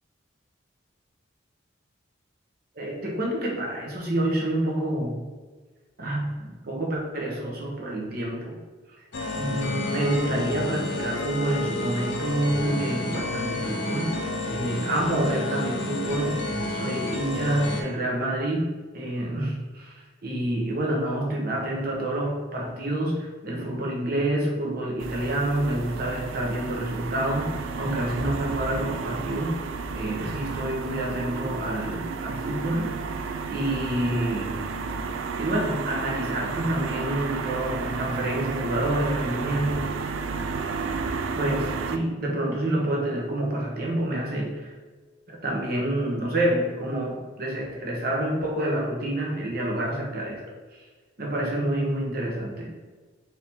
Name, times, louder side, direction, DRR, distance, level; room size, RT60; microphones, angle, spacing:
voice 1, 2.8-5.2 6.0-8.6 9.3-14.2 14.5-16.4 16.7-29.6 29.9-33.2 33.5-34.7 35.4-40.1 41.4-44.8 45.3-50.4 50.7-50.9 51.2-52.8, right 1 dB, 50° right, -2 dB, 0.9 m, -28 dB
sound 1, 9.1-17.8, left 2 dB, 65° left, 0.6 m, -30 dB
sound 2, 25.0-42.0, right 4 dB, 80° right, 0.3 m, -32 dB
4.3 x 2.8 x 3.5 m, 1.4 s
head